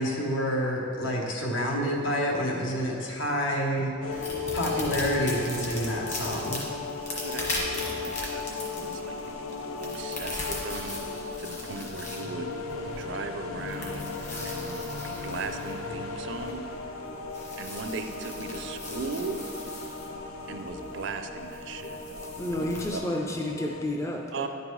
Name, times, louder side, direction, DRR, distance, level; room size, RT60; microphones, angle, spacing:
voice 1, 0.0-6.6, equal, 70° left, -1 dB, 1.1 m, -28 dB
sound 1, 4.0-23.8, left 4 dB, 90° left, 0.6 m, -37 dB
sound 2, 4.1-23.0, left 1 dB, 35° left, 1.3 m, -39 dB
voice 2, 7.1-9.2 9.8-11.0 11.4-14.1 14.4-16.6 17.4-19.4 20.5-22.3 22.9-23.0 24.3-24.5, right 4 dB, 60° right, 7 dB, 0.4 m, -38 dB
voice 3, 22.4-24.5, left 1 dB, 15° left, 1 dB, 0.4 m, -31 dB
10.0 x 5.2 x 3.1 m, 2.5 s
head